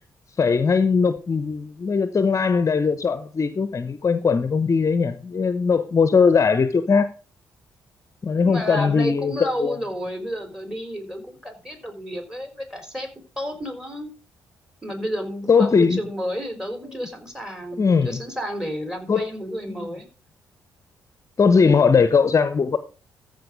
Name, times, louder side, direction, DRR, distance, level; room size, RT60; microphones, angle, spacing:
voice 1, 0.4-7.1 8.2-9.8 15.5-16.0 17.8-18.2 19.1-19.3 19.7-19.9 21.4-22.8, left 5 dB, 40° left, 0.9 m, -20 dB
voice 2, 8.4-13.1 13.4-14.1 14.8-20.1, equal, 5° right, 4.2 m, -31 dB
14.0 x 5.2 x 5.1 m
hypercardioid pair, 45°, 8 cm